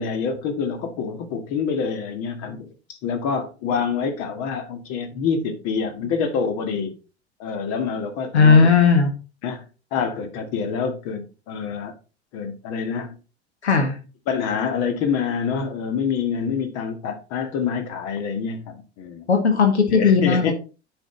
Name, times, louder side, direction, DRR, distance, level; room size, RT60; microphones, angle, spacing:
voice 1, 0.0-6.9 7.4-8.6 9.4-9.6 9.9-11.9 12.3-13.2 14.3-19.3 19.9-20.5, left 6 dB, 45° left, 1.9 m, -26 dB
voice 2, 8.3-9.1 13.6-14.0 19.3-20.5, left 5 dB, 75° left, 1.7 m, -16 dB
10.0 x 5.3 x 4.0 m
figure-of-eight pair, 75°, 33 cm